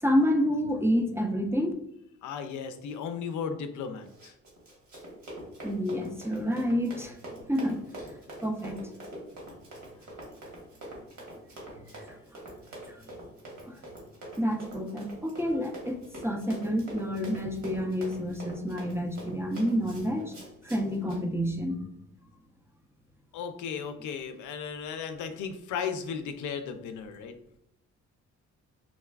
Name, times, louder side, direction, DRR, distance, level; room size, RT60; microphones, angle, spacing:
voice 1, 0.0-1.7 5.6-7.2 7.5-8.1 8.4-8.8 11.8-11.9 12.9-13.0 13.7-13.8 14.4-20.3 20.6-21.8, equal, 10° right, 3 dB, 0.4 m, -29 dB
voice 2, 2.2-4.3 23.3-27.3, left 6 dB, 75° left, 7 dB, 0.5 m, -35 dB
Run, 4.0-21.2, right 1 dB, 70° right, 1.5 m, -45 dB
3.9 x 2.3 x 2.2 m, 0.76 s
cardioid pair, 90°, 30 cm